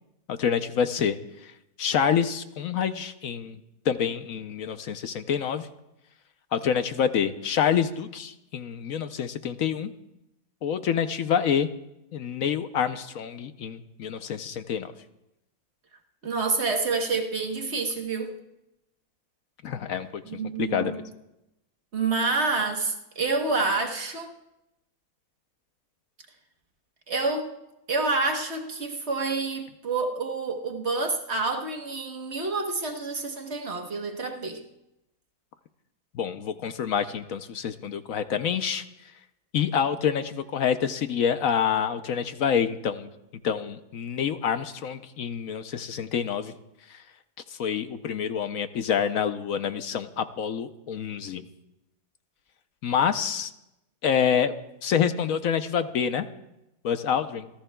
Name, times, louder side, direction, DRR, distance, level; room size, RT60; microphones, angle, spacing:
voice 1, 0.3-1.5 1.8-3.6 3.9-5.7 6.5-9.9 10.6-11.7 12.1-14.9 19.6-20.2 20.6-21.0 36.1-38.8 39.5-43.1 43.4-46.5 46.9-47.0 47.5-51.4 52.8-53.5 54.0-54.5 54.8-56.2 56.8-57.5, left 8 dB, 70° left, 1.1 m, -27 dB
voice 2, 16.2-18.4 20.3-21.0 21.9-24.3 27.1-27.5 27.9-34.6, right 3 dB, 50° right, 1.4 m, -28 dB
28.0 x 14.5 x 2.3 m
omnidirectional pair, 1.6 m